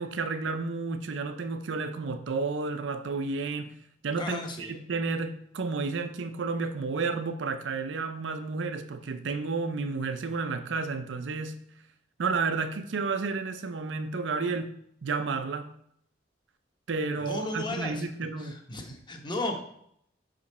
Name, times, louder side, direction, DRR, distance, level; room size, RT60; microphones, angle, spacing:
voice 1, 0.0-3.8 4.0-11.6 12.2-15.7 16.9-18.6, right 4 dB, 90° right, 0.5 m, -31 dB
voice 2, 4.2-4.7 17.2-18.0 18.4-19.6, left 2 dB, 25° left, 0.9 m, -34 dB
6.2 x 5.0 x 4.1 m
head